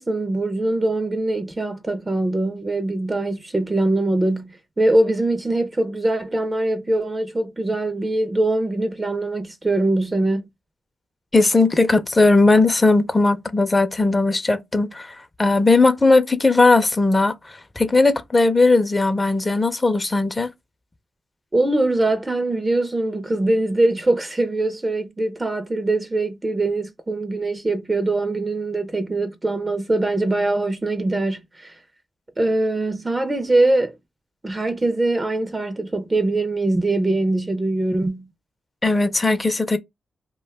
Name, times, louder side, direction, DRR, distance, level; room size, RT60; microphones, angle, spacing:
voice 1, 0.0-10.5 21.5-31.8 32.4-33.9 34.4-38.3, right 2 dB, 25° right, 0.5 m, -22 dB
voice 2, 11.3-17.4 17.8-20.5 38.8-39.8, left 3 dB, 25° left, 0.5 m, -18 dB
2.4 x 2.2 x 3.3 m
cardioid pair, 60°, 0 cm